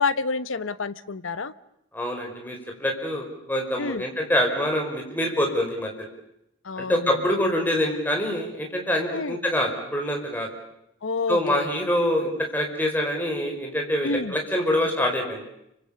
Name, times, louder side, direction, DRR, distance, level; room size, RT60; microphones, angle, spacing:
voice 1, 0.0-1.5 3.8-4.0 6.6-7.1 9.1-9.4 11.0-11.7 14.0-14.4, left 4 dB, 85° left, 14 dB, 0.9 m, -28 dB
voice 2, 1.9-6.1 6.8-10.5 11.3-15.4, equal, 10° left, 1 dB, 5.1 m, -25 dB
29.5 x 25.0 x 7.0 m, 0.81 s
head